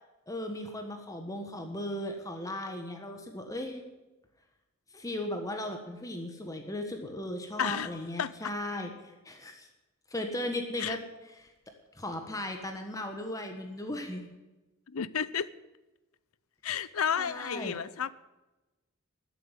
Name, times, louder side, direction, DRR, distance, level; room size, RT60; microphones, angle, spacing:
voice 1, 0.3-3.8 4.9-9.7 10.1-11.0 11.3-11.5 12.0-14.3 17.2-17.8, left 1 dB, 15° left, 4 dB, 1.3 m, -37 dB
voice 2, 7.6-7.9 8.2-8.5 10.8-11.0 14.9-15.5 16.6-18.1, left 8 dB, 85° left, 18 dB, 0.6 m, -32 dB
13.0 x 7.9 x 9.8 m, 1.1 s
head